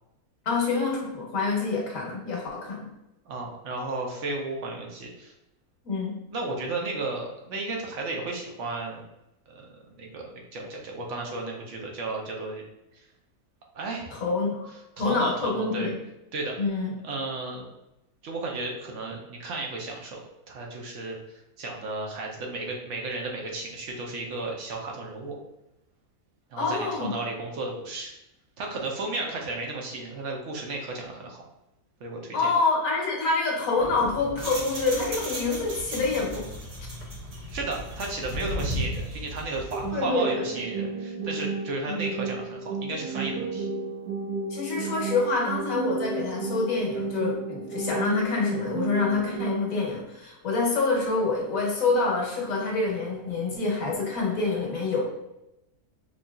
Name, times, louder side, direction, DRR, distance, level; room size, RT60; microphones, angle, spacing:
voice 1, 0.4-2.9 5.8-6.2 14.2-14.7 15.0-16.0 16.6-16.9 26.6-27.1 32.3-36.5 39.9-40.4 41.8-42.0 44.5-55.0, left 3 dB, 60° left, -2 dB, 1.2 m, -26 dB
voice 2, 3.3-5.3 6.3-9.0 9.5-9.7 10.0-12.6 12.9-13.1 13.7-14.1 15.0-15.9 16.3-16.5 17.0-17.7 18.2-20.2 20.5-25.4 26.5-28.1 28.6-31.4 32.0-32.5 37.5-43.7, right 2 dB, 60° right, 0 dB, 0.8 m, -34 dB
sound 1, 33.8-39.9, equal, 45° right, 0.5 m, -35 dB
sound 2, 39.7-49.7, right 3 dB, 80° right, 1.2 m, -32 dB
5.0 x 2.7 x 2.3 m, 0.89 s
omnidirectional pair, 1.7 m